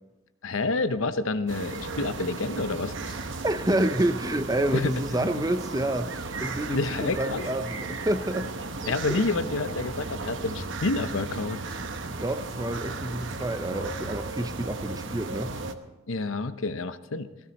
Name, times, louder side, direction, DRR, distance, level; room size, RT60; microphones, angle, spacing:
voice 1, 0.4-3.1 4.7-5.3 6.7-7.4 8.9-11.6 16.1-17.3, left 3 dB, 70° left, 11 dB, 0.7 m, -29 dB
sound 1, 1.5-15.8, right 3 dB, 60° right, 0.9 m, -35 dB
voice 2, 3.4-8.5 8.8-9.2 12.1-15.5, right 1 dB, 15° right, 10 dB, 0.5 m, -28 dB
17.5 x 15.0 x 4.1 m, 1.1 s
head